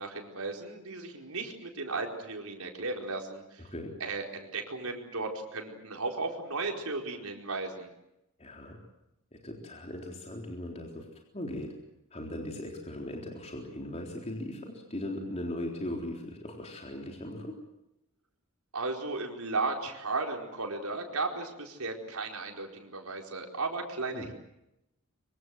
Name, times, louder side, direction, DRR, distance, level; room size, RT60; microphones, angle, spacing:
voice 1, 0.0-3.7 4.0-7.9 18.7-24.3, right 3 dB, 85° right, 2 dB, 4.7 m, -35 dB
voice 2, 3.6-3.9 8.4-8.8 9.3-11.1 11.3-11.7 12.1-17.5 24.1-24.3, left 1 dB, 30° left, 0 dB, 3.8 m, -38 dB
25.0 x 24.0 x 7.8 m, 0.87 s
head